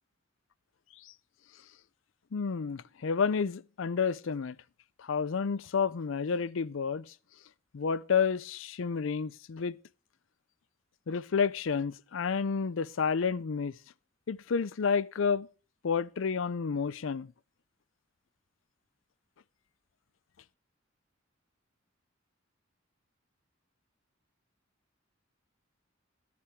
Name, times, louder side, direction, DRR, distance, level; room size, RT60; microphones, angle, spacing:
voice 1, 2.3-4.5 5.0-7.0 7.7-9.8 11.1-13.7 14.3-15.5 15.8-17.3, left 6 dB, 70° left, 0.5 m, -30 dB
14.0 x 10.0 x 3.5 m
head